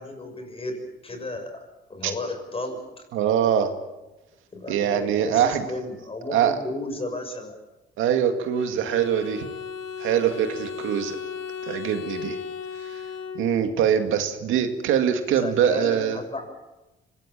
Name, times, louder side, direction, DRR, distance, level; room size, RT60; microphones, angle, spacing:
voice 1, 0.0-1.6 1.9-2.8 4.5-7.5 15.4-16.5, left 2 dB, 30° left, 5 dB, 6.6 m, -33 dB
voice 2, 3.1-3.7 4.7-5.6 6.3-6.6 8.0-9.5 10.0-11.2 11.6-12.4 12.9-13.0 13.3-16.2, right 9 dB, 90° right, 6 dB, 2.1 m, -23 dB
Bowed string instrument, 8.5-13.8, left 7 dB, 80° left, 3.0 m, -36 dB
25.0 x 18.0 x 7.5 m, 1.0 s
cardioid pair, 90°, 20 cm